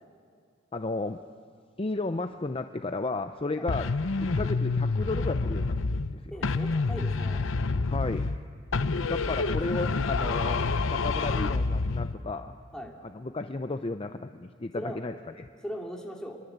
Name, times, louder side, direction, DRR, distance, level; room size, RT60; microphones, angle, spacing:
voice 1, 0.7-1.2 1.8-3.9 4.2-5.8 6.1-6.3 7.9-8.3 9.1-12.6 13.0-15.5, left 2 dB, 25° left, 8 dB, 0.6 m, -33 dB
sound 1, 3.7-6.1 6.4-8.4 8.7-12.2, left 3 dB, 70° left, 0.8 m, -28 dB
voice 2, 6.3-7.4 12.7-12.9 14.7-15.0 15.6-16.4, equal, 5° left, 0 dB, 2.7 m, -39 dB
28.5 x 22.5 x 8.1 m, 2.2 s
head